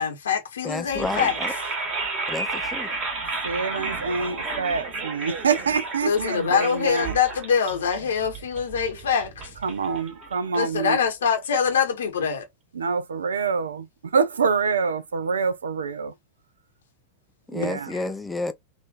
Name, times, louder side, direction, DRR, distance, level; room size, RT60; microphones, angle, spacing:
voice 1, 0.0-1.4 6.0-9.5 10.5-12.5 17.9-18.1, left 7 dB, 65° left, 0.9 m, -24 dB
voice 2, 0.6-1.5 2.3-2.9 17.5-18.5, left 2 dB, 5° left, 0.4 m, -30 dB
sound 1, 0.9-10.9, right 3 dB, 30° right, 1.7 m, -32 dB
voice 3, 3.4-7.1 9.6-11.0 12.8-16.1 17.5-17.9, right 5 dB, 70° right, 0.3 m, -26 dB
3.5 x 2.5 x 2.4 m
figure-of-eight pair, 90°, 0 cm